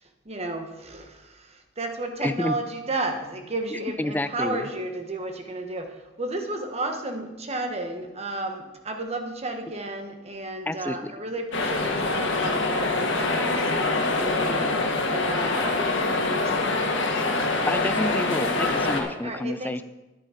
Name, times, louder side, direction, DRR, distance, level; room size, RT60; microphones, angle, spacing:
voice 1, 0.2-16.8 19.2-19.8, right 2 dB, 35° right, 5 dB, 1.2 m, -33 dB
voice 2, 2.2-2.5 4.0-4.7 10.7-11.1 17.7-19.8, left 1 dB, 10° left, 13 dB, 0.3 m, -29 dB
sound 1, 11.5-19.0, left 2 dB, 65° left, 1.5 m, -25 dB
10.0 x 9.4 x 4.9 m, 1.0 s
head